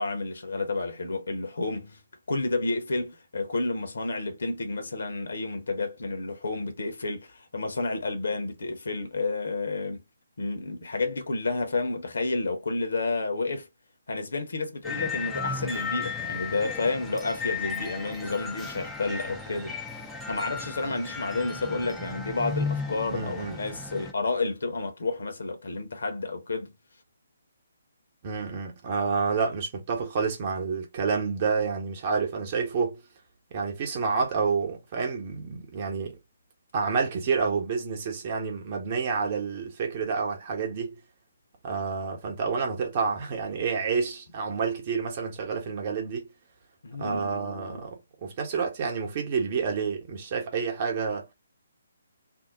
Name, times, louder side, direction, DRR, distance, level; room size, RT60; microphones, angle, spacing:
voice 1, 0.0-2.0 2.3-10.0 10.4-13.7 14.1-19.8 20.3-26.8 46.8-47.9, left 3 dB, 60° left, 1.0 m, -30 dB
sound 1, 14.8-24.1, left 4 dB, 5° left, 0.5 m, -35 dB
voice 2, 23.1-23.6 28.2-33.0 33.5-36.2 36.7-41.0 41.6-46.3 47.0-51.3, right 5 dB, 35° right, 1.0 m, -29 dB
2.8 x 2.1 x 3.8 m
figure-of-eight pair, 135°, 0 cm